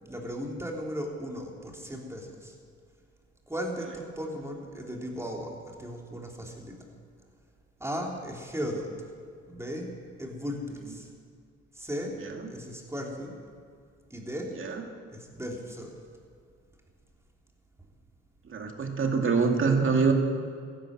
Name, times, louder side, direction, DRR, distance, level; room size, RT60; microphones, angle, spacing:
voice 1, 0.0-2.5 3.5-6.8 7.8-8.9 9.5-9.9 10.2-11.1 11.7-12.2 12.5-13.3 14.1-14.6 15.1-15.9, equal, 10° right, 0 dB, 3.2 m, -36 dB
voice 2, 18.5-20.1, right 4 dB, 40° right, 3 dB, 2.3 m, -25 dB
15.0 x 11.5 x 7.5 m, 2.2 s
cardioid pair, 90°, 30 cm